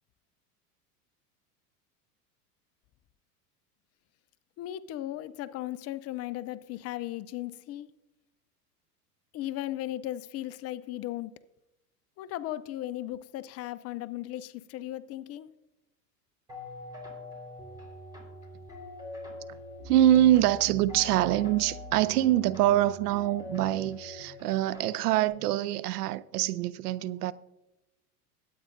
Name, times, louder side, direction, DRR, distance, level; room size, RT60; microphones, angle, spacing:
voice 1, 4.6-7.9 9.3-11.3 12.2-15.5, left 14 dB, 35° left, 0.5 m, -36 dB
sound 1, 16.5-25.3, left 2 dB, 10° right, 4.3 m, -43 dB
voice 2, 19.9-27.3, right 13 dB, 75° right, 0.6 m, -25 dB
22.0 x 8.6 x 2.6 m
hypercardioid pair, 95°, 47 cm